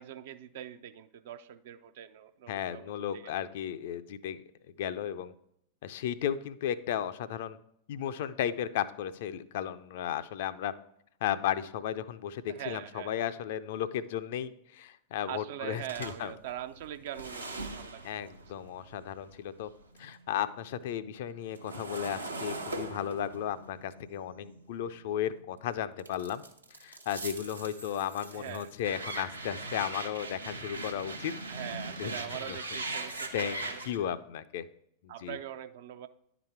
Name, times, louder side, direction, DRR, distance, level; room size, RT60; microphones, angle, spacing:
voice 1, 0.0-3.5 12.5-13.2 15.3-18.3 28.3-28.7 31.5-33.8 35.1-36.1, right 11 dB, 55° right, 11 dB, 0.5 m, -42 dB
voice 2, 2.5-4.4 4.8-5.3 5.8-7.6 7.9-10.7 11.2-16.3 18.0-19.7 20.0-26.4 26.8-31.3 32.0-32.6 33.3-34.6 35.0-35.4, left 10 dB, 55° left, 13 dB, 0.4 m, -34 dB
sound 1, 15.9-20.1 20.5-25.4 26.0-34.0, right 2 dB, 80° right, 0.8 m, -41 dB
10.5 x 4.0 x 4.5 m, 0.73 s
figure-of-eight pair, 90°, 0 cm